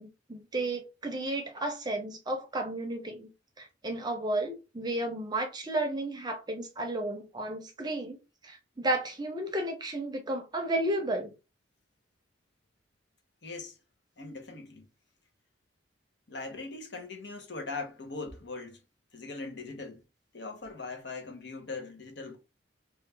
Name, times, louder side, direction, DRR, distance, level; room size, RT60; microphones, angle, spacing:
voice 1, 0.0-3.3 3.6-11.3, right 1 dB, 20° right, 0.6 m, -33 dB
voice 2, 13.4-13.8 14.2-14.9 16.3-18.8 19.1-20.0 20.3-22.4, left 3 dB, 65° left, 0.8 m, -40 dB
3.2 x 2.3 x 3.2 m
head